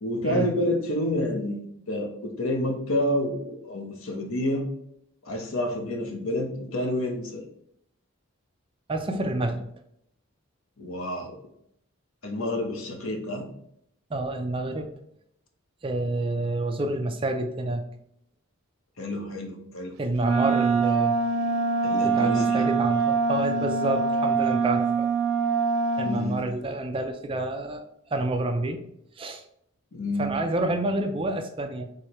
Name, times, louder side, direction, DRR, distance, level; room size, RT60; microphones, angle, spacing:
voice 1, 0.0-4.6 5.2-7.4 10.8-11.3 12.2-13.5 19.0-20.0 21.8-22.7 26.0-26.4 29.9-30.3, left 1 dB, 75° left, 3 dB, 0.9 m, -29 dB
voice 2, 8.9-9.7 14.1-14.9 15.8-17.8 20.0-21.2 22.0-25.1 26.0-28.8 29.2-29.4 30.2-31.9, right 2 dB, 25° right, 5 dB, 0.4 m, -28 dB
Wind instrument woodwind instrument, 20.2-26.2, right 4 dB, 85° right, 0.6 m, -24 dB
4.8 x 3.1 x 2.9 m, 0.74 s
head